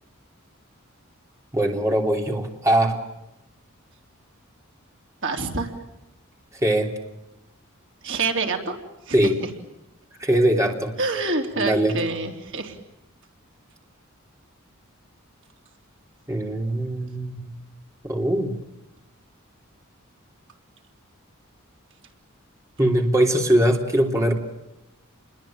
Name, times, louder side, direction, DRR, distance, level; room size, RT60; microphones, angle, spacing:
voice 1, 1.5-3.0 6.6-6.9 9.1-9.3 10.2-10.9 11.6-12.0 16.3-17.5 18.0-18.5 22.8-24.3, right 1 dB, 15° right, 2 dB, 3.2 m, -21 dB
voice 2, 5.2-5.7 8.0-8.8 9.1-9.3 11.0-12.8, right 3 dB, 60° right, 3 dB, 3.5 m, -26 dB
29.5 x 22.5 x 8.8 m, 0.92 s
head